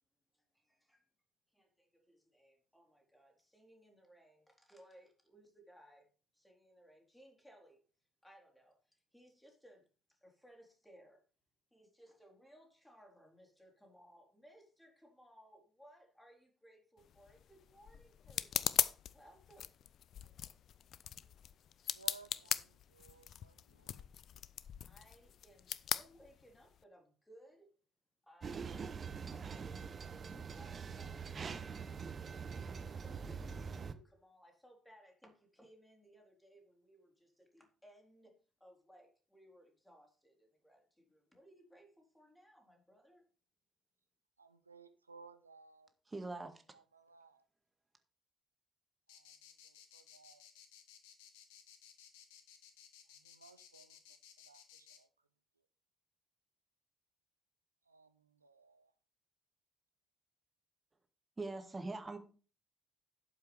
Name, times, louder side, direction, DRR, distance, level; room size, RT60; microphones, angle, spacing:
voice 1, 0.3-1.1 1.5-6.1 6.3-7.8 8.2-11.2 11.7-18.8 19.1-19.7 24.9-27.7 28.2-43.3, equal, 5° left, 3.8 m, -63 dB
sound 1, 17.0-26.8, left 10 dB, 55° left, 0.4 m, -40 dB
voice 2, 21.9-24.1 44.4-45.9 46.7-47.5 49.1-50.4 53.0-54.0 54.4-55.3 55.6-55.7 57.8-58.9, right 4 dB, 90° right, 0.6 m, -60 dB
sound 2, 28.4-33.9, right 6 dB, 40° right, 0.9 m, -44 dB
voice 3, 46.1-46.6 61.4-62.2, right 2 dB, 25° right, 1.9 m, -42 dB
sound 3, 49.1-55.0, left 9 dB, 70° left, 1.4 m, -59 dB
12.0 x 8.0 x 3.4 m
figure-of-eight pair, 45°, 0 cm